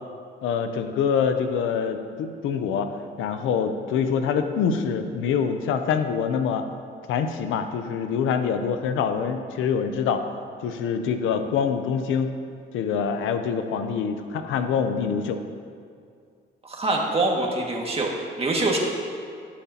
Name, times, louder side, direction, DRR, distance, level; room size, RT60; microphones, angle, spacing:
voice 1, 0.4-2.9 3.2-6.6 7.1-10.2 10.6-12.3 12.7-15.4, left 6 dB, 90° left, 8 dB, 0.7 m, -25 dB
voice 2, 16.6-18.8, right 2 dB, 30° right, -1 dB, 2.0 m, -24 dB
18.0 x 7.3 x 2.9 m, 2.2 s
cardioid pair, 90°, 20 cm